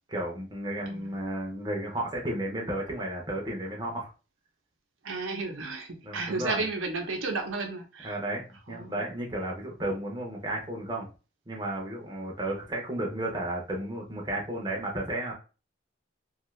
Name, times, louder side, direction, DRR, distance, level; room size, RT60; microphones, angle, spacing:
voice 1, 0.1-4.1 6.0-6.6 8.0-11.1 11.5-15.3, right 1 dB, 20° right, -1 dB, 0.6 m, -33 dB
voice 2, 5.0-8.2 8.7-9.0, right 3 dB, 90° right, 3 dB, 0.7 m, -33 dB
2.6 x 2.3 x 3.1 m, 0.33 s
head